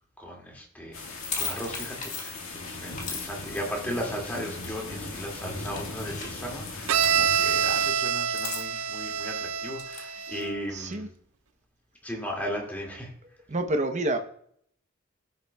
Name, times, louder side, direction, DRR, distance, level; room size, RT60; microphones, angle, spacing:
voice 1, 0.2-11.1 12.0-13.1, equal, 10° left, -1 dB, 2.3 m, -36 dB
sound 1, 0.9-7.9, left 3 dB, 90° left, 2.0 m, -38 dB
sound 2, 1.2-2.6 3.0-3.3 5.6-6.4 7.0-7.8 8.3-9.2 9.8-10.5, left 5 dB, 35° left, 1.9 m, -37 dB
Bowed string instrument, 6.9-10.6, right 7 dB, 85° right, 0.5 m, -26 dB
voice 2, 10.7-11.1 13.5-14.2, right 1 dB, 35° right, 6 dB, 0.9 m, -27 dB
15.0 x 6.9 x 2.3 m, 0.65 s
head